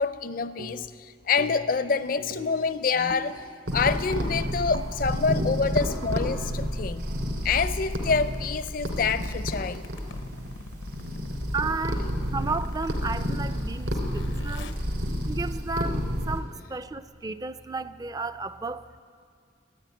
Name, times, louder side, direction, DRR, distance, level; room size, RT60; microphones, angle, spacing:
voice 1, 0.0-3.4 3.7-7.1 7.4-9.9, left 5 dB, 50° left, 13 dB, 0.5 m, -27 dB
sound 1, 0.6-1.0 1.4-1.9 2.2-8.0, right 2 dB, 90° right, 1.1 m, -43 dB
sound 2, 3.7-16.4, equal, 65° right, 3.0 m, -30 dB
Zipper (clothing), 7.9-15.9, left 2 dB, 90° left, 0.8 m, -44 dB
voice 2, 11.5-14.7 15.3-18.9, right 3 dB, 20° right, 13 dB, 0.4 m, -33 dB
13.5 x 10.5 x 9.3 m, 2.1 s
head